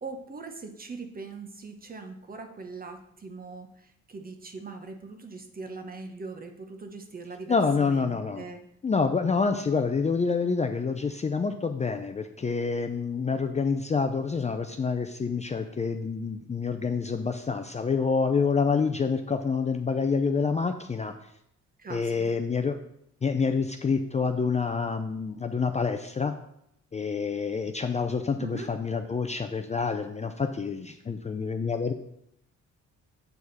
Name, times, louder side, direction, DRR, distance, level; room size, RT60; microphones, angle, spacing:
voice 1, 0.0-8.6 21.8-22.3 28.4-28.7, right 4 dB, 30° right, 6 dB, 1.0 m, -41 dB
voice 2, 7.5-8.4 8.8-21.1 21.9-22.8 23.2-26.3 26.9-31.9, left 5 dB, 25° left, 6 dB, 0.5 m, -27 dB
7.8 x 4.8 x 4.1 m, 0.74 s
cardioid pair, 90°, 30 cm